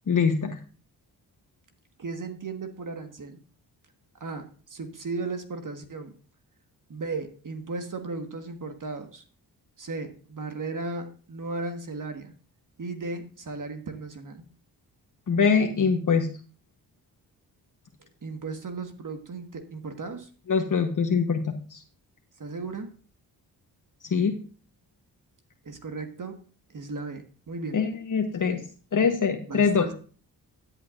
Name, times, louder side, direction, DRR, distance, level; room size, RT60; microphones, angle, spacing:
voice 1, 0.1-0.6 15.3-16.3 20.5-21.8 24.1-24.4 27.7-28.6 28.9-29.9, left 5 dB, 50° left, 4 dB, 1.2 m, -23 dB
voice 2, 2.0-3.4 4.2-6.1 6.9-9.2 9.8-12.3 12.8-14.4 18.0-20.3 22.4-22.9 25.6-26.4 26.7-27.9 29.5-29.9, right 3 dB, 50° right, 5 dB, 1.6 m, -36 dB
13.0 x 8.1 x 2.6 m, 0.39 s
cardioid pair, 55°, 41 cm